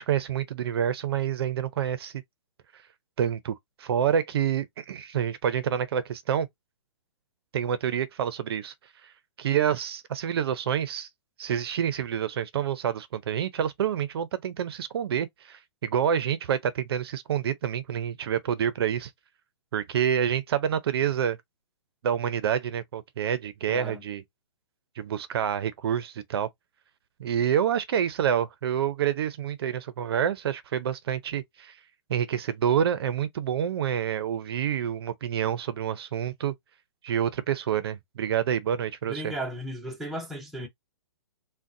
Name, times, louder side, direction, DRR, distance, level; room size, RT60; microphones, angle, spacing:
voice 1, 0.0-2.1 2.7-2.8 3.2-6.5 7.5-8.7 9.0-9.1 9.4-11.1 11.4-19.1 19.7-21.4 22.0-24.2 25.0-26.5 27.2-31.8 32.1-36.5 37.0-39.3, right 9 dB, 55° right, 0.5 m, -27 dB
voice 2, 23.7-24.0 39.1-40.7, right 1 dB, ahead, 0.5 m, -35 dB
3.8 x 2.1 x 2.6 m
hypercardioid pair, 150°, 16 cm